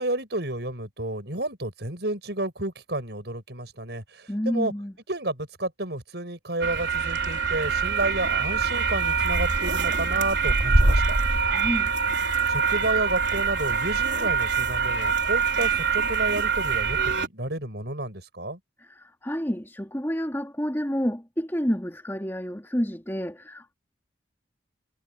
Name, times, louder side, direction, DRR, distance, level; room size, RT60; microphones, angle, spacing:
voice 1, 0.0-4.7 5.1-11.2 11.5-11.6 12.5-18.6, right 2 dB, 65° right, 6.2 m, -31 dB
voice 2, 4.3-4.9 11.5-11.9 18.9-23.7, equal, 15° left, 2.7 m, -29 dB
sound 1, 6.6-17.3, right 5 dB, 80° right, 3.6 m, -24 dB
head